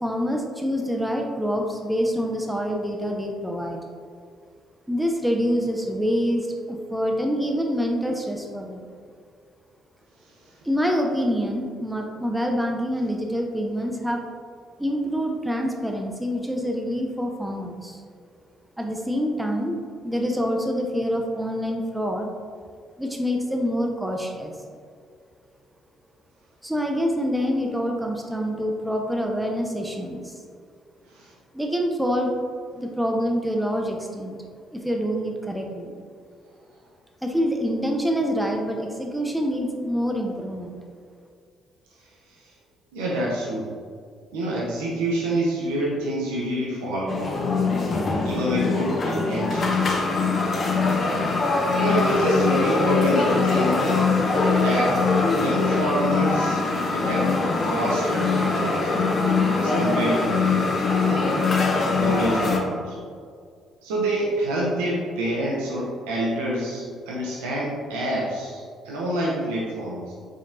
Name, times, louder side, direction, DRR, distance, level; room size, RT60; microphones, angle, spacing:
voice 1, 0.0-3.8 4.9-8.9 10.6-14.2 14.8-18.0 18.8-19.8 20.0-22.3 23.0-24.5 26.6-30.4 31.5-32.3 32.7-34.4 34.7-35.9 37.2-40.8, equal, 5° right, 1 dB, 0.6 m, -26 dB
voice 2, 42.0-42.5 42.9-43.7 44.3-47.4 48.2-50.0 51.8-53.9 54.4-55.0 55.3-56.6 56.9-59.0 59.6-60.7 60.9-61.4 62.0-63.0 63.8-70.1, right 1 dB, 70° right, -5 dB, 0.7 m, -27 dB
sound 1, 47.1-62.6, left 3 dB, 40° left, 0.7 m, -22 dB
5.0 x 4.1 x 2.5 m, 2.1 s
figure-of-eight pair, 45°, 0 cm